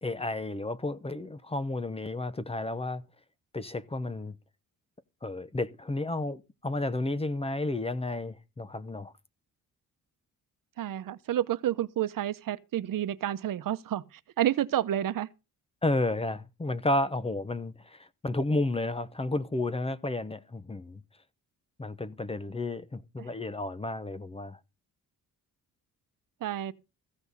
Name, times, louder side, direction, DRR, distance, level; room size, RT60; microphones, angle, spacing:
voice 1, 0.0-3.0 3.5-4.4 5.2-9.1 15.8-21.0 21.8-24.6, left 2 dB, 15° left, 0.8 m, -32 dB
voice 2, 10.8-15.3 23.2-23.3 26.4-26.7, right 12 dB, 65° right, 0.9 m, -30 dB
15.0 x 6.1 x 7.0 m
cardioid pair, 125°, 35 cm